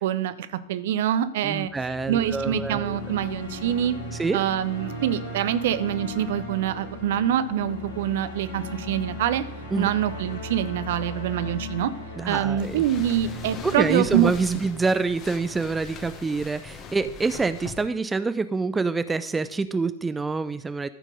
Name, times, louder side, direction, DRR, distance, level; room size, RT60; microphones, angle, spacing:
voice 1, 0.0-0.3 0.7-1.7 2.1-4.0 4.3-9.4 9.8-11.9 12.3-14.3, right 11 dB, 55° right, 13 dB, 0.6 m, -25 dB
voice 2, 1.4-3.0 4.2-4.4 9.7-9.9 12.2-12.8 13.6-20.9, right 4 dB, 10° right, 12 dB, 0.3 m, -26 dB
sound 1, 1.6-15.8, left 1 dB, 65° left, 3.0 m, -37 dB
sound 2, 12.6-17.9, left 5 dB, 35° left, 1.2 m, -41 dB
13.0 x 4.6 x 5.1 m, 0.80 s
figure-of-eight pair, 90°, 0 cm